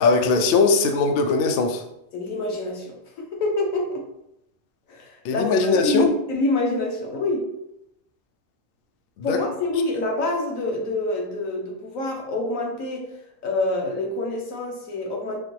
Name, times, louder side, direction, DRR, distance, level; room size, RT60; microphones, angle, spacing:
voice 1, 0.0-1.8 5.2-6.1 9.2-9.4, left 4 dB, 65° left, 6 dB, 0.6 m, -20 dB
voice 2, 2.1-4.0 4.9-5.5 5.8-7.5 9.2-13.1 13.4-15.4, left 2 dB, 80° left, 1 dB, 1.3 m, -26 dB
5.5 x 2.9 x 3.1 m, 0.82 s
omnidirectional pair, 1.4 m